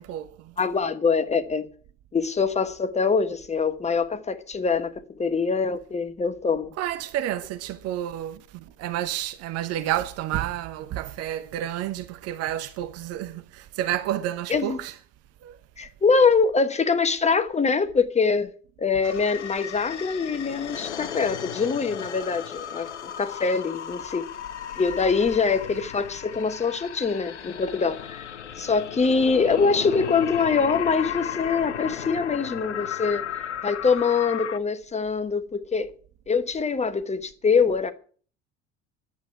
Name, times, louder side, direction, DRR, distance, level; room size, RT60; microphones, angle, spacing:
voice 1, 0.0-0.5 6.8-15.0 15.4-15.6, right 12 dB, 45° right, 0.9 m, -30 dB
voice 2, 0.6-1.7 2.1-6.7 14.5-14.8 15.8-18.5 18.8-24.3 24.8-28.3 28.6-33.2 33.6-35.9 36.3-37.9, left 5 dB, 20° left, 1.2 m, -24 dB
sound 1, 19.0-34.6, left 9 dB, 80° left, 0.7 m, -35 dB
11.0 x 8.2 x 10.0 m
figure-of-eight pair, 65°, 34 cm